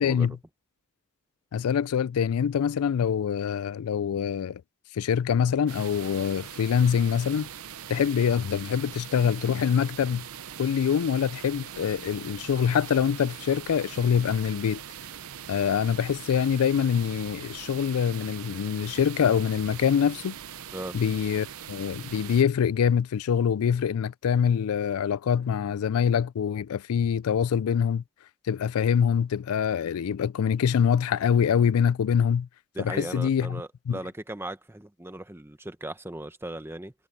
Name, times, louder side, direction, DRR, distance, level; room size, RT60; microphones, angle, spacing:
voice 1, 0.0-0.4 1.5-4.6 4.9-7.5 7.9-10.3 10.6-14.8 15.5-20.4 20.9-28.0 28.5-32.5 32.8-34.0, left 7 dB, 80° left, 0.4 m, -25 dB
sound 1, 1.4-2.1 5.8-8.6 12.7-15.9, equal, 20° left, 4.9 m, -57 dB
sound 2, 5.7-22.4, right 9 dB, 80° right, 0.7 m, -42 dB
voice 2, 32.7-36.9, right 1 dB, 10° right, 1.0 m, -37 dB
head